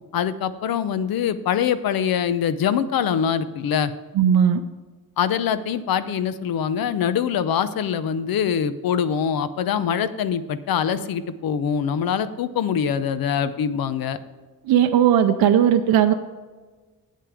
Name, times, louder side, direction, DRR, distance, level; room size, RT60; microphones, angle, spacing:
voice 1, 0.1-3.9 5.2-14.2, left 8 dB, 80° left, 13 dB, 0.7 m, -24 dB
voice 2, 4.1-4.6 14.6-16.1, right 9 dB, 85° right, 7 dB, 0.6 m, -17 dB
9.2 x 8.5 x 4.9 m, 1.3 s
wide cardioid pair, 170°, 35 cm